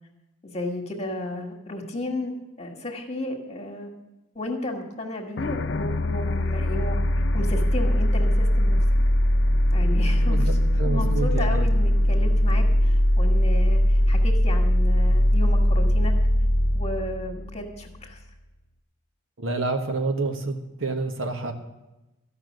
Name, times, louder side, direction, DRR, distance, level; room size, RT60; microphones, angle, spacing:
voice 1, 0.4-2.3 2.6-3.9 4.3-7.0 7.3-8.8 9.7-10.5 10.8-16.1 16.7-18.2, left 1 dB, 30° left, 1 dB, 1.6 m, -33 dB
sound 1, 5.4-18.1, equal, 60° left, 0.6 m, -21 dB
voice 2, 10.2-11.6 19.4-21.5, right 3 dB, 80° right, 5 dB, 1.4 m, -28 dB
14.0 x 5.9 x 9.2 m, 0.99 s
head